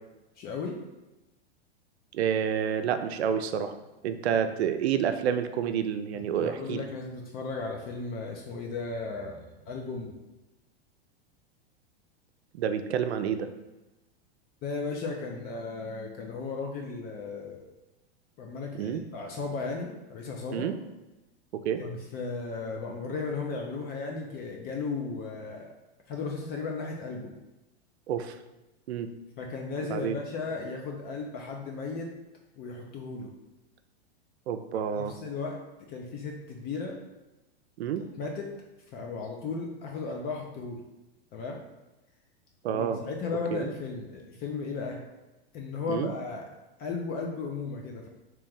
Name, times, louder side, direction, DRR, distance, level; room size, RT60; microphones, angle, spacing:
voice 1, 0.4-0.8 6.1-10.1 14.6-17.7 18.4-20.7 21.8-25.7 26.1-27.3 29.4-32.1 32.6-33.3 34.7-35.6 35.9-37.0 38.2-38.5 38.9-40.8 41.3-41.6 42.7-45.0 45.5-46.5 46.8-48.1, left 4 dB, 30° left, 1 dB, 0.4 m, -35 dB
voice 2, 2.1-3.7 4.0-6.8 12.5-13.5 18.8-19.0 20.5-20.7 21.5-21.8 28.1-28.4 28.9-29.1 29.9-30.2 34.5-35.2 37.8-38.0 42.6-43.0 43.5-43.7 45.9-46.1, right 8 dB, 85° right, 9 dB, 0.5 m, -29 dB
3.1 x 2.9 x 3.5 m, 1.0 s
hypercardioid pair, 120°, 32 cm